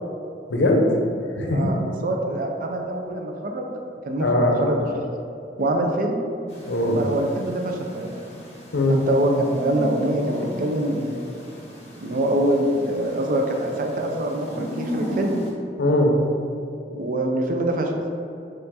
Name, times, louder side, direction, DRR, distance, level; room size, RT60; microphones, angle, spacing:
voice 1, 0.5-0.9 1.4-1.7 4.2-4.5 6.7-7.0 8.7-9.0 15.8-16.1, left 1 dB, 90° left, 1 dB, 0.6 m, -20 dB
voice 2, 1.5-5.1 5.6-6.2 6.8-8.1 9.1-11.1 12.0-15.4 16.9-18.1, right 1 dB, 50° right, 2 dB, 0.4 m, -25 dB
sound 1, 6.5-15.5, equal, 35° left, 0.9 m, -36 dB
4.4 x 2.5 x 4.1 m, 2.6 s
head